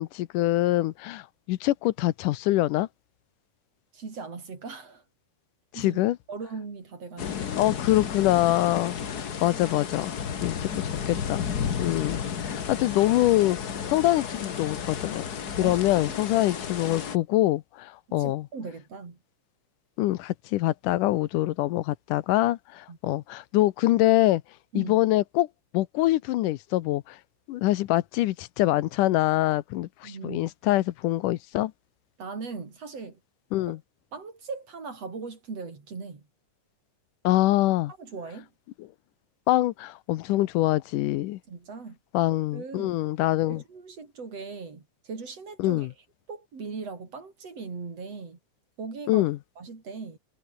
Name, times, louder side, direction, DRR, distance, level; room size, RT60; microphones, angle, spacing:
voice 1, 0.0-2.9 5.7-6.2 7.2-11.5 11.8-15.2 15.6-18.4 20.0-24.4 24.7-25.5 25.7-27.2 27.5-31.7 33.5-33.8 37.2-37.9 39.5-41.4 42.1-43.6 45.6-45.9 49.1-49.4, left 16 dB, 85° left, 2.4 m, -25 dB
voice 2, 3.9-5.0 5.7-6.0 6.3-7.5 15.6-16.2 18.1-19.2 22.9-23.0 24.7-25.0 30.0-30.5 32.2-33.2 33.7-33.8 34.1-36.2 38.0-38.5 41.5-42.0 42.5-43.0 43.5-45.9 46.3-48.4 48.8-49.3 49.6-50.2, right 4 dB, 50° right, 5.3 m, -39 dB
sound 1, 7.2-17.2, left 7 dB, 45° left, 1.4 m, -33 dB
omnidirectional pair, 3.7 m